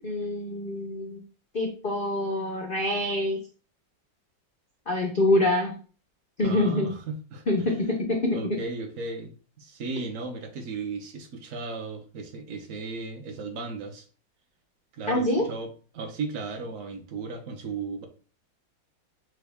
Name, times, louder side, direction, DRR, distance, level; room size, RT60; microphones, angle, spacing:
voice 1, 0.0-1.2 1.5-3.4 4.9-5.7 6.4-6.9 7.5-8.6 15.1-15.5, left 1 dB, 90° left, 1 dB, 0.4 m, -25 dB
voice 2, 6.4-7.9 8.3-14.1 14.9-18.1, right 4 dB, 60° right, 6 dB, 0.8 m, -36 dB
6.2 x 2.3 x 3.4 m, 0.39 s
omnidirectional pair, 2.1 m